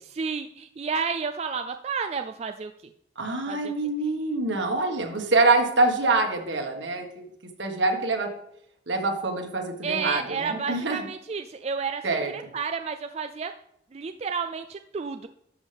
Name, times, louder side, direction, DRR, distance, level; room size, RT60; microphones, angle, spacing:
voice 1, 0.0-2.7 3.5-3.7 9.8-13.5 13.9-15.3, right 5 dB, 35° right, 7 dB, 0.3 m, -31 dB
voice 2, 3.2-7.0 7.6-8.3 8.9-11.0 12.0-12.3, right 3 dB, 75° right, 3 dB, 1.6 m, -25 dB
11.5 x 7.3 x 3.5 m, 0.73 s
head